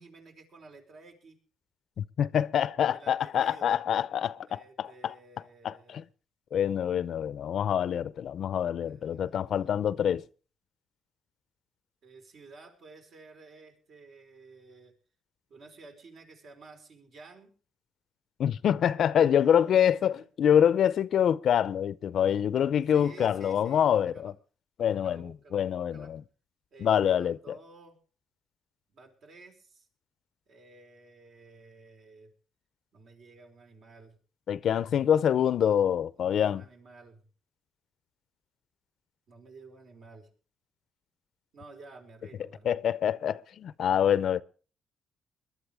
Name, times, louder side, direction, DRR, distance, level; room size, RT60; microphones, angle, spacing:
voice 1, 0.0-1.4 2.9-3.7 4.4-6.0 8.8-10.1 12.0-15.0 15.5-17.5 19.3-20.2 22.8-24.3 24.8-26.2 26.7-28.0 28.9-29.9 30.5-32.3 32.9-34.2 36.1-37.3 39.3-40.3 41.5-42.9, right 3 dB, 65° right, 5.0 m, -52 dB
voice 2, 2.2-5.1 5.6-6.0 6.5-10.2 18.4-24.3 24.8-26.2 26.8-27.5 34.5-36.6 42.6-44.4, left 9 dB, 65° left, 0.6 m, -26 dB
22.0 x 12.0 x 3.5 m
cardioid pair, 90°, 0 cm